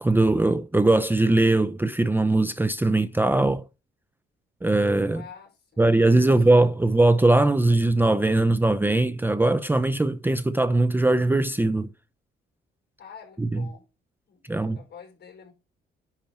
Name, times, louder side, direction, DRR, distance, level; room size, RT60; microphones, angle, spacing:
voice 1, 0.0-3.6 4.6-5.2 5.8-11.9 13.4-13.6 14.5-14.8, right 2 dB, 10° right, 0.6 m, -20 dB
voice 2, 5.1-6.0 6.3-6.4 13.0-13.9 14.3-15.5, left 7 dB, 55° left, 5.3 m, -47 dB
10.5 x 4.3 x 5.9 m
cardioid pair, 90°, 20 cm